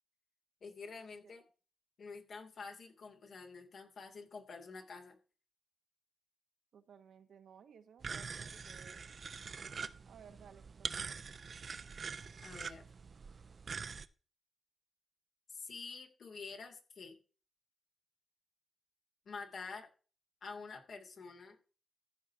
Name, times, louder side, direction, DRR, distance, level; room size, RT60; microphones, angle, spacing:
voice 1, 0.6-1.4 2.0-5.2 12.4-12.8 15.5-17.2 19.2-19.9 20.4-21.6, left 4 dB, 70° left, 4 dB, 2.6 m, -48 dB
voice 2, 6.7-9.2 10.1-11.1, right 7 dB, 85° right, 8 dB, 1.3 m, -58 dB
sound 1, 8.0-14.1, right 5 dB, 50° right, 0.7 m, -44 dB
14.5 x 4.8 x 6.8 m, 0.37 s
cardioid pair, 85°, 0 cm